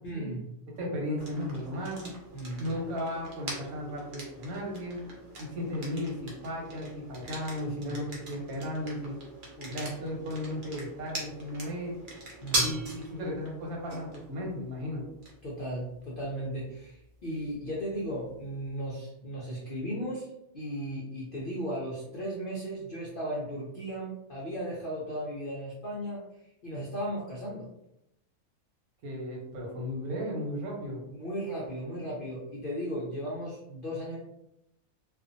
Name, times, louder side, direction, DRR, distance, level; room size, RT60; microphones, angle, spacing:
voice 1, 0.0-0.4 2.3-2.7 7.6-8.0 9.6-9.7 12.4-12.8 15.4-20.3 20.5-26.2 26.6-27.7 31.1-34.2, equal, 60° left, -5 dB, 0.5 m, -36 dB
voice 2, 0.8-2.1 2.6-5.1 5.4-9.1 9.7-12.0 12.5-15.0 29.0-31.0, left 1 dB, 80° right, -2 dB, 1.3 m, -35 dB
sound 1, 1.2-18.9, right 2 dB, 50° right, 0.6 m, -41 dB
2.5 x 2.4 x 2.5 m, 0.82 s
omnidirectional pair, 1.5 m